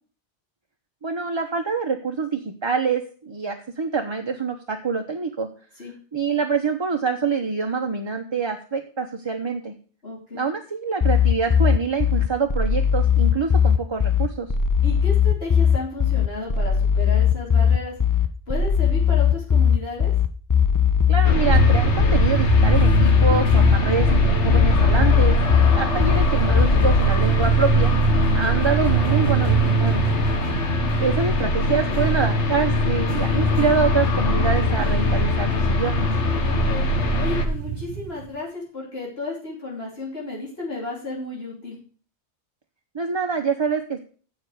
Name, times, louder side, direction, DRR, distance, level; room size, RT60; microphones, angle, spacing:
voice 1, 1.0-5.5 6.1-9.7 10.3-14.5 21.1-27.9 28.3-30.0 31.0-36.1 42.9-44.0, right 5 dB, 30° right, 3 dB, 0.8 m, -26 dB
voice 2, 10.0-10.5 14.8-18.0 18.5-20.1 30.4-30.6 36.4-36.9 37.2-41.8, left 2 dB, 60° left, -4 dB, 3.4 m, -33 dB
sound 1, 11.0-27.0, left 8 dB, 30° left, 0.4 m, -19 dB
sound 2, 21.2-37.5, left 1 dB, 90° left, 1.5 m, -22 dB
sound 3, 21.6-38.3, right 10 dB, 85° right, 1.0 m, -27 dB
7.7 x 7.1 x 7.9 m, 0.42 s
omnidirectional pair, 1.1 m